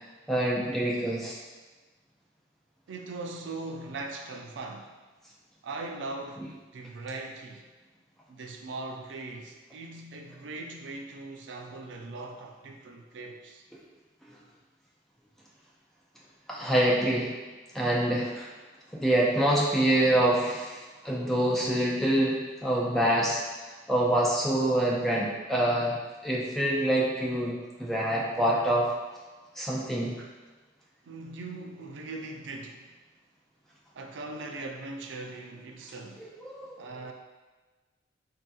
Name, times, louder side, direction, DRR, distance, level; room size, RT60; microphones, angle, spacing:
voice 1, 0.3-1.4 6.4-6.5 16.5-17.3 17.7-18.5 18.9-23.4 23.9-26.0 26.2-28.9 29.5-30.2 36.2-36.8, right 1 dB, ahead, 0.4 m, -26 dB
voice 2, 2.9-5.0 5.6-6.5 6.7-7.7 8.3-13.6 31.0-32.9 33.9-36.3 36.8-37.1, right 3 dB, 75° right, 0.4 m, -40 dB
3.5 x 2.7 x 2.3 m
head